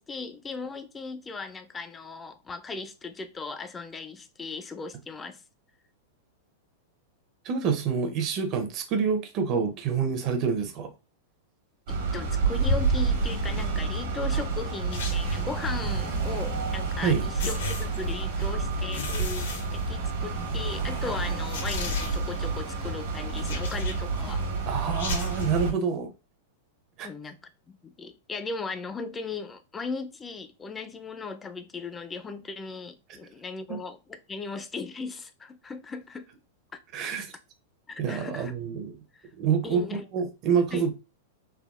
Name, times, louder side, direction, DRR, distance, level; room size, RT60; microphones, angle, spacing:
voice 1, 0.0-5.4 11.9-24.5 27.0-27.4 27.7-36.2 37.0-37.1 37.9-38.5 39.1-39.3 39.6-40.0 40.7-40.9, left 4 dB, 15° left, 0.4 m, -37 dB
voice 2, 7.4-10.9 17.0-17.2 24.7-26.1 27.0-27.1 33.7-33.8 36.9-37.3 38.0-39.0 39.4-40.9, right 6 dB, 40° right, 0.6 m, -27 dB
sound 1, 11.9-25.7, right 4 dB, 70° right, 1.1 m, -29 dB
sound 2, 14.9-15.5 16.9-17.0 17.4-18.4 18.9-20.4 20.7-20.8 21.4-22.5 23.3-24.2 24.9-25.6, left 4 dB, 80° left, 0.8 m, -36 dB
3.3 x 2.0 x 2.3 m
hypercardioid pair, 125°, 0 cm